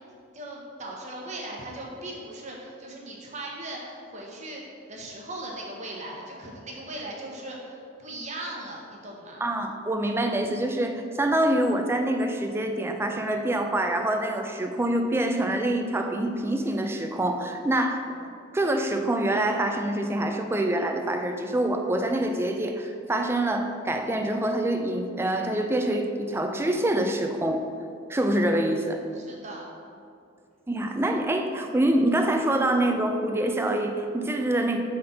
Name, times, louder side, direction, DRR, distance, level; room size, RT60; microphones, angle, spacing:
voice 1, 0.3-4.6 4.9-9.4 29.1-29.7, right 1 dB, 35° right, -2 dB, 1.0 m, -38 dB
voice 2, 9.4-18.0 18.5-27.6 28.1-29.0 30.7-34.8, right 1 dB, 10° right, 4 dB, 0.3 m, -25 dB
5.0 x 4.0 x 5.7 m, 2.4 s
head